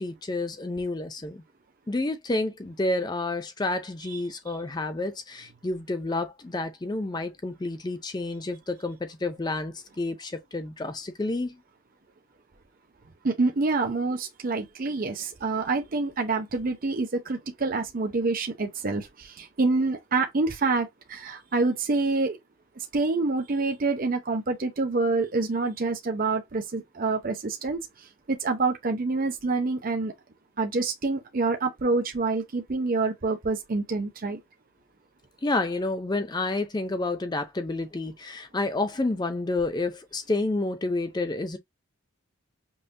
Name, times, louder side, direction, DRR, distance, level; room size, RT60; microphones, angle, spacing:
voice 1, 0.0-1.4 1.9-11.6 35.4-41.6, left 2 dB, 20° left, 0.4 m, -29 dB
voice 2, 13.2-22.4 22.8-30.1 30.6-34.4, right 3 dB, 40° right, 0.6 m, -27 dB
5.4 x 2.1 x 2.6 m
head